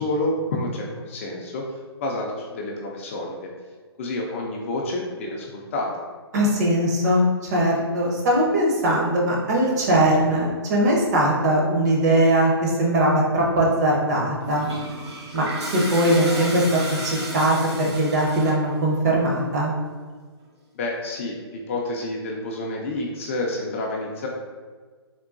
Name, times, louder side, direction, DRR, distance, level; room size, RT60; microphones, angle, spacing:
voice 1, 0.0-1.6 2.0-3.5 4.0-6.0 20.7-24.3, left 2 dB, 30° left, -1 dB, 0.3 m, -29 dB
voice 2, 6.3-14.7 15.3-15.4 15.7-19.7, right 1 dB, 40° right, -2 dB, 0.7 m, -20 dB
Toilet flush, 14.4-18.7, right 1 dB, 90° right, 1.0 m, -33 dB
3.7 x 2.2 x 2.4 m, 1.5 s
hypercardioid pair, 145°, 14 cm